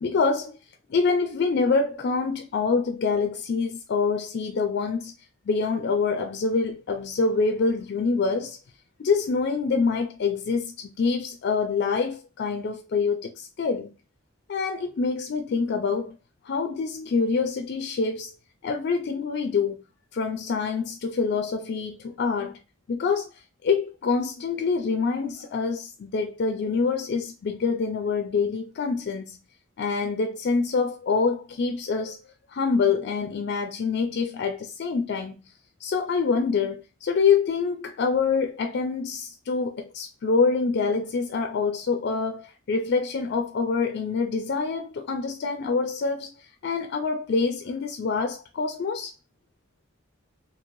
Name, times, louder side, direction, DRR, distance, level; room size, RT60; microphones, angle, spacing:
voice 1, 0.0-0.6 0.9-5.1 5.5-8.6 9.0-13.9 14.5-16.2 16.4-18.3 18.6-19.8 20.1-22.6 22.9-23.3 23.6-29.4 29.8-32.2 32.5-35.4 35.8-46.3 46.6-49.1, left 4 dB, 55° left, 0.4 m, -26 dB
3.0 x 2.7 x 2.6 m
head